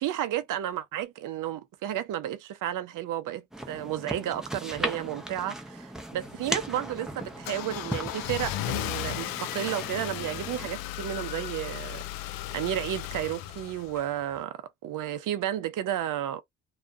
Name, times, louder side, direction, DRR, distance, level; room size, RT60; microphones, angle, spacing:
voice 1, 0.0-16.4, right 11 dB, 55° right, 0.6 m, -32 dB
sound 1, 3.5-10.7, equal, ahead, 0.6 m, -38 dB
Car / Engine starting, 6.2-14.4, left 13 dB, 65° left, 0.5 m, -36 dB
2.3 x 2.1 x 2.6 m
hypercardioid pair, 55°, 37 cm